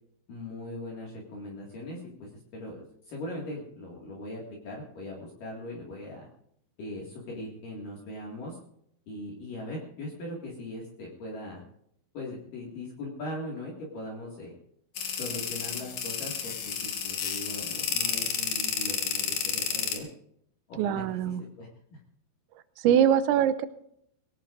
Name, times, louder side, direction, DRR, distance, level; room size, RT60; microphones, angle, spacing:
voice 1, 0.3-6.3 6.8-8.6 9.1-11.6 12.1-14.5 15.1-20.1 20.7-21.0 21.4-22.0, left 1 dB, 55° left, -3 dB, 3.3 m, -40 dB
sound 1, 15.0-20.0, left 7 dB, 75° left, 1.7 m, -31 dB
voice 2, 20.8-21.4 22.8-23.7, right 9 dB, 80° right, 13 dB, 2.9 m, -23 dB
22.5 x 17.0 x 2.6 m, 0.71 s
omnidirectional pair, 5.5 m